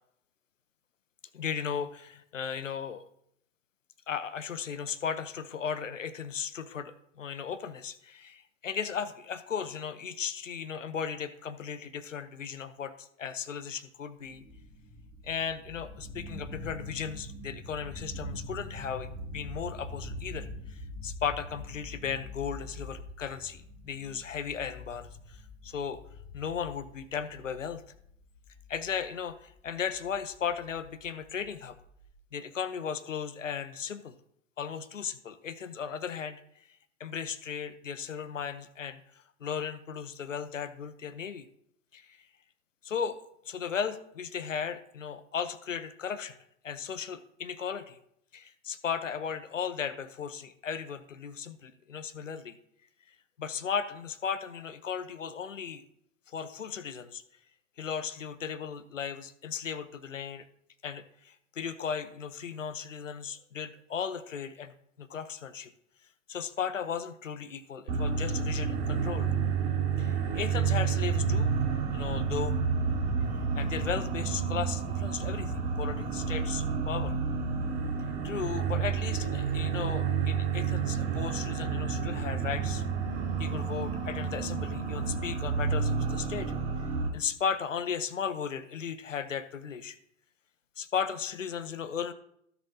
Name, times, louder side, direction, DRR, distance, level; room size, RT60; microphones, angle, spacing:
voice 1, 1.3-3.0 4.1-14.4 15.2-25.1 25.6-26.0 26.3-27.8 28.7-31.8 32.3-34.1 34.6-36.4 37.0-39.0 39.4-41.5 41.9-42.2 42.8-46.3 46.6-48.0 48.3-52.5 53.4-55.8 56.3-57.2 57.8-60.5 60.8-65.7 66.3-69.3 70.0-71.5 71.9-72.6 73.5-77.1 78.2-82.8 83.4-86.5 87.1-90.0 90.8-92.1, left 7 dB, 80° left, 12 dB, 0.9 m, -36 dB
sound 1, 14.4-32.1, left 1 dB, ahead, 2.4 m, -45 dB
sound 2, 67.9-87.1, right 6 dB, 55° right, 3.6 m, -30 dB
16.5 x 7.1 x 2.8 m, 0.71 s
figure-of-eight pair, 95°, 37 cm